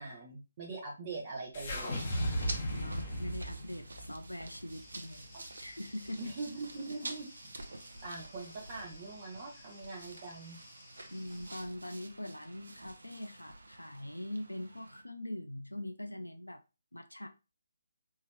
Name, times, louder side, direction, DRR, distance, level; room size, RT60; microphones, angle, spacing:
voice 1, 0.0-2.0 5.3-5.4 6.2-7.3 8.0-10.6, right 3 dB, 30° right, 0.8 m, -42 dB
sound 1, 1.5-5.8, equal, 40° left, 1.2 m, -37 dB
sound 2, 1.7-15.0, right 2 dB, 65° right, 0.7 m, -49 dB
voice 2, 2.7-5.3 5.6-6.4 6.9-7.0 11.1-16.6 16.9-17.3, left 1 dB, 85° left, 0.5 m, -42 dB
sound 3, 4.7-11.7, left 2 dB, 20° left, 1.2 m, -58 dB
4.6 x 3.0 x 3.0 m
figure-of-eight pair, 145°, 0 cm